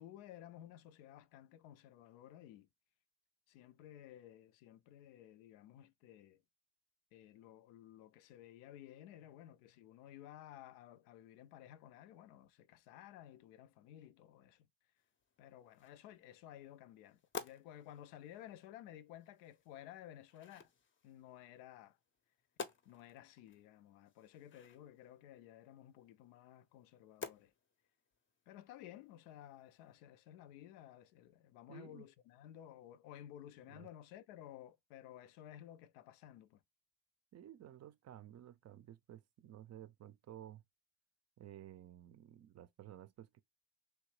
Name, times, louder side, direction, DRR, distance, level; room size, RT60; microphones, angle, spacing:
voice 1, 0.0-2.7 3.5-6.4 7.1-14.7 15.4-20.7 21.0-22.0 22.9-27.5 28.5-36.6, left 12 dB, 70° left, 0.5 m, -55 dB
sound 1, 15.0-29.9, left 5 dB, 25° left, 0.6 m, -54 dB
voice 2, 31.7-32.0 33.7-33.9 37.3-40.6 41.4-43.4, right 11 dB, 35° right, 0.5 m, -54 dB
3.2 x 2.6 x 3.2 m
hypercardioid pair, 65°, 46 cm